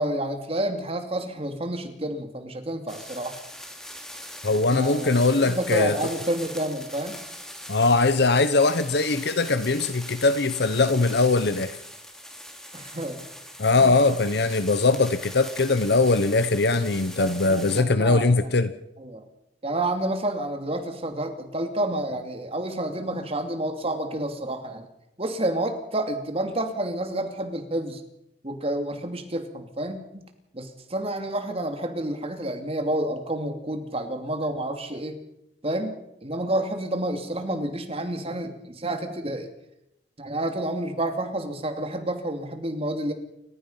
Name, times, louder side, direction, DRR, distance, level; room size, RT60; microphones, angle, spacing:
voice 1, 0.0-3.4 4.7-7.2 12.7-13.2 13.8-14.1 17.2-18.5 19.0-19.2 19.6-24.9 25.2-28.0 28.4-30.0 30.5-35.2 35.6-39.5 40.2-43.1, right 1 dB, 35° right, 6 dB, 2.8 m, -29 dB
sound 1, 2.9-17.8, equal, 5° left, 3.1 m, -41 dB
voice 2, 4.4-6.0 7.7-11.8 13.6-18.7, left 3 dB, 65° left, 12 dB, 1.0 m, -21 dB
29.0 x 15.5 x 5.7 m, 0.84 s
head